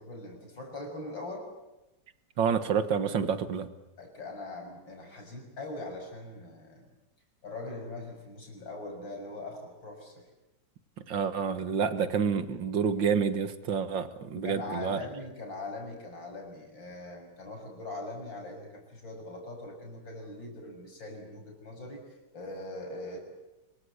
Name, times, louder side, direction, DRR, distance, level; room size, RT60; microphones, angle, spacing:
voice 1, 0.0-1.5 4.0-6.9 7.4-10.2 14.4-22.0 22.3-23.2, left 2 dB, 80° left, 2 dB, 7.1 m, -41 dB
voice 2, 2.4-3.7 11.1-15.0, right 6 dB, 80° right, 10 dB, 2.3 m, -28 dB
26.0 x 23.5 x 8.3 m, 0.97 s
omnidirectional pair, 2.0 m